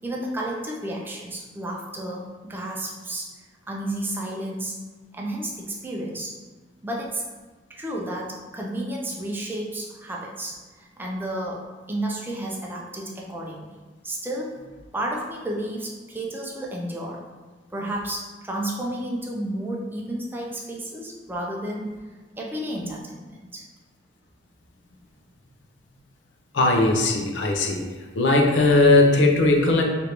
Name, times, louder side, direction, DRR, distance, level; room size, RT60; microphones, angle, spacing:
voice 1, 0.0-3.3 3.7-4.8 5.1-6.3 6.8-7.2 7.7-11.6 11.9-13.8 14.0-14.6 14.9-17.2 17.7-22.0 22.4-23.6, right 1 dB, 10° right, -2 dB, 0.4 m, -31 dB
voice 2, 26.5-27.8 28.2-29.8, left 2 dB, 75° left, 1 dB, 0.5 m, -18 dB
3.2 x 2.5 x 2.9 m, 1.3 s
head